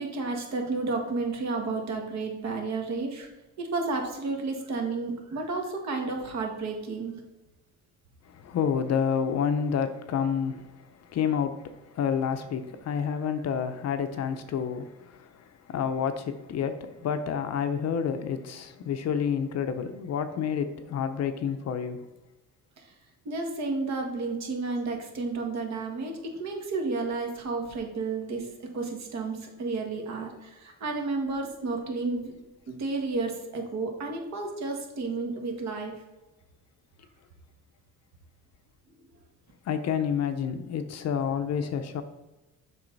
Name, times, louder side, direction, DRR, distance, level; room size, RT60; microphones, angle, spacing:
voice 1, 0.0-3.3 3.6-7.2 23.3-32.3 32.7-35.9, right 3 dB, 55° right, 1.7 m, -31 dB
voice 2, 8.3-15.3 15.7-22.0 39.7-42.0, left 7 dB, 50° left, 0.7 m, -29 dB
7.5 x 5.4 x 4.0 m
cardioid pair, 135°, 34 cm